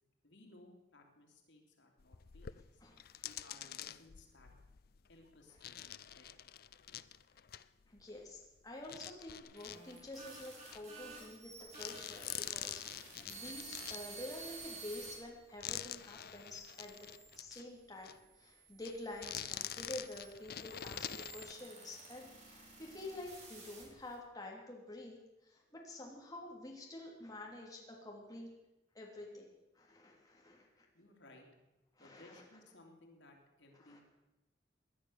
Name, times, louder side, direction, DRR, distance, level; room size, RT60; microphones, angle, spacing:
voice 1, 0.2-2.8 3.2-4.5 5.1-5.6 5.8-6.4 30.9-31.5 32.0-34.0, left 2 dB, 90° left, 1 dB, 3.1 m, -61 dB
sound 1, 2.0-8.5 8.8-11.5 11.7-17.7 18.0-18.2 18.8-21.5, left 11 dB, 55° left, 0.5 m, -46 dB
voice 2, 2.8-3.3 7.9-17.1 17.4-25.2 25.4-28.5 28.9-30.8 32.0-32.4 33.8-34.0, left 1 dB, 20° left, -1 dB, 3.3 m, -49 dB
sound 2, 9.4-15.1 15.8-17.4 18.2-24.2, right 4 dB, 40° right, 4.8 m, -53 dB
19.0 x 11.0 x 6.7 m, 1.0 s
head